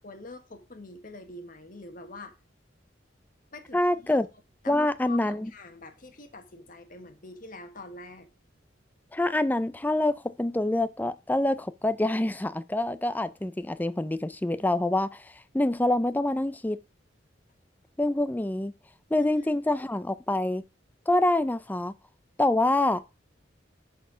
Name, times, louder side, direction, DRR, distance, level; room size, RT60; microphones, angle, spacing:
voice 1, 0.0-2.3 3.5-4.2 4.6-8.3 19.2-19.3, left 2 dB, 45° left, 1.4 m, -45 dB
voice 2, 3.7-4.3 4.7-5.5 9.1-15.3 15.5-16.8 18.0-18.7 19.1-20.6 21.1-21.9 22.4-23.0, left 1 dB, 10° left, 0.4 m, -26 dB
11.0 x 4.4 x 5.0 m
head